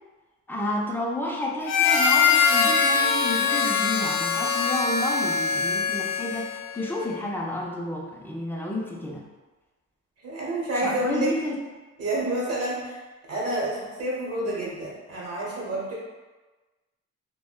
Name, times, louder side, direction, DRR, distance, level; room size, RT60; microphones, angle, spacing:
voice 1, 0.5-9.2 10.8-11.6, left 1 dB, 5° left, -2 dB, 0.4 m, -30 dB
Harmonica, 1.6-6.7, left 6 dB, 90° left, 0.5 m, -22 dB
voice 2, 10.2-11.3 12.0-13.0 13.3-15.9, right 1 dB, 55° right, -4 dB, 1.1 m, -29 dB
3.3 x 2.1 x 2.3 m, 1.2 s
cardioid pair, 90°, 30 cm